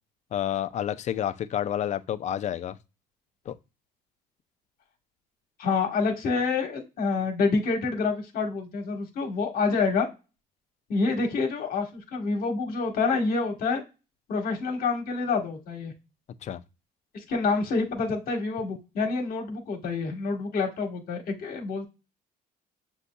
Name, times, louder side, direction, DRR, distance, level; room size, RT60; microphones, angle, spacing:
voice 1, 0.3-2.8 3.5-3.6 16.4-16.6, left 11 dB, 45° left, 0.4 m, -29 dB
voice 2, 5.6-10.1 10.9-13.8 14.3-15.9 17.1-21.9, left 4 dB, 60° left, 1.3 m, -27 dB
6.7 x 2.7 x 2.2 m
cardioid pair, 110°, 17 cm